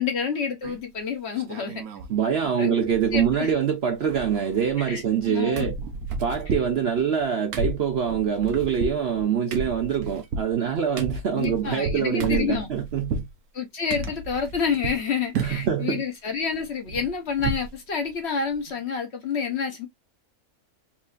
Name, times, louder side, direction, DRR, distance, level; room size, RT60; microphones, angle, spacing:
voice 1, 0.0-1.8 2.6-2.7 3.1-3.5 4.8-5.0 5.3-5.7 11.3-12.7 13.5-19.9, left 6 dB, 50° left, 1.1 m, -28 dB
sound 1, 0.6-1.0 1.4-2.2 2.4-2.5 2.8-3.7 3.9-5.3 5.6-13.3 13.9-15.0 15.3-15.8 16.2-17.7 18.1-18.2 18.5-18.7, right 3 dB, 75° right, 1.2 m, -33 dB
voice 2, 2.1-5.8 6.2-13.2 15.3-16.0, right 8 dB, 60° right, 0.7 m, -24 dB
4.3 x 2.7 x 2.4 m
omnidirectional pair, 1.6 m